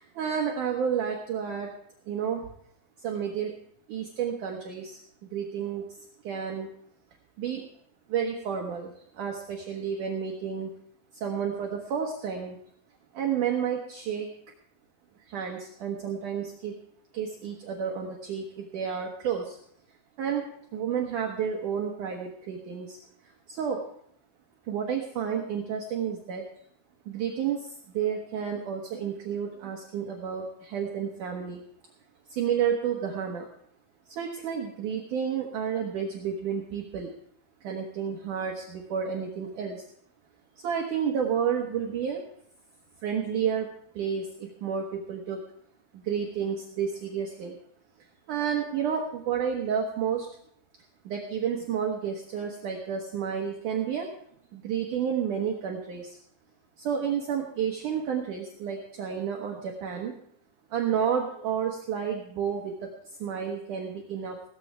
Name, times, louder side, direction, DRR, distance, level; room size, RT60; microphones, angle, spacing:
voice 1, 0.0-1.7 2.1-2.4 3.0-3.5 3.9-5.8 6.2-6.7 7.4-7.6 8.1-10.7 11.1-12.6 13.1-14.3 15.3-16.8 17.1-19.6 20.2-20.4 20.7-23.0 23.5-23.8 24.7-26.4 27.1-31.6 32.3-33.5 34.1-37.1 37.6-39.8 40.6-42.2 43.0-43.7 44.0-45.4 45.9-47.6 48.3-50.3 51.0-54.1 54.5-56.2 56.8-60.1 60.7-62.7 63.2-64.4, right 7 dB, 70° right, 1 dB, 1.9 m, -30 dB
17.0 x 14.0 x 3.5 m, 0.68 s
omnidirectional pair, 5.4 m